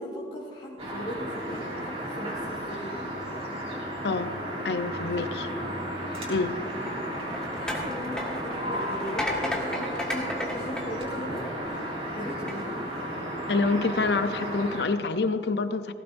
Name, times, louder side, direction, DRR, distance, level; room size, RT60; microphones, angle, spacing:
voice 1, 0.0-3.0 5.4-5.6 6.6-6.9 7.6-11.5 12.1-12.7, equal, 30° left, -5 dB, 1.7 m, -38 dB
sound 1, 0.8-14.8, equal, 35° right, 3.8 m, -34 dB
voice 2, 4.0-4.4 4.6-5.5 6.3-6.6 13.5-15.9, left 3 dB, 75° left, 10 dB, 0.7 m, -27 dB
sound 2, 6.8-11.7 12.3-12.5, left 1 dB, 5° left, 1.5 m, -34 dB
18.5 x 16.5 x 2.6 m, 2.3 s
head